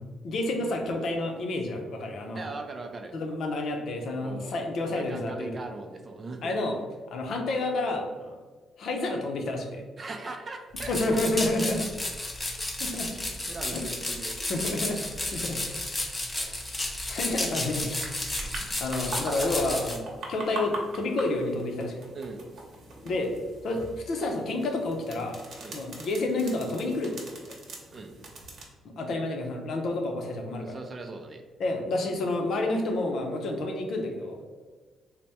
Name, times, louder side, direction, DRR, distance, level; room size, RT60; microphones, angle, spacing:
voice 1, 0.2-2.4 3.1-5.6 6.4-6.8 7.1-8.4 8.8-9.8 10.9-11.8 12.8-13.1 13.7-13.8 14.5-15.8 16.3-16.5 17.1-18.4 18.8-22.1 23.0-23.3 23.6-25.4 25.7-27.1 27.4-27.6 29.0-30.8 31.6-34.4, left 2 dB, 65° left, 3 dB, 0.6 m, -30 dB
voice 2, 2.3-3.1 4.2-4.5 4.9-6.6 10.0-11.0 13.3-14.4 22.1-22.5 25.6-25.8 27.9-28.1 30.6-31.4, right 3 dB, 35° right, 4 dB, 0.5 m, -39 dB
sound 1, 10.7-20.0, left 1 dB, 20° left, 0.6 m, -33 dB
sound 2, 18.0-28.6, right 2 dB, 65° right, 0.9 m, -42 dB
3.3 x 2.1 x 4.2 m, 1.4 s
cardioid pair, 90°, 0 cm